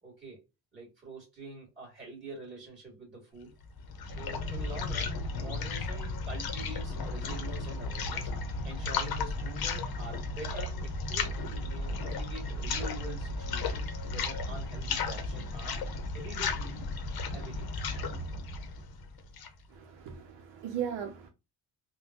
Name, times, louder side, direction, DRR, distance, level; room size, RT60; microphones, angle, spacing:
voice 1, 0.0-0.4 0.7-3.5 4.0-8.3 8.6-15.8 16.1-16.9 17.3-17.7, right 2 dB, 20° right, 1.9 m, -45 dB
sound 1, 3.6-19.6, left 3 dB, 55° left, 0.8 m, -34 dB
voice 2, 19.7-21.3, right 8 dB, 80° right, 0.8 m, -37 dB
3.7 x 2.2 x 2.8 m
cardioid pair, 160°, 44 cm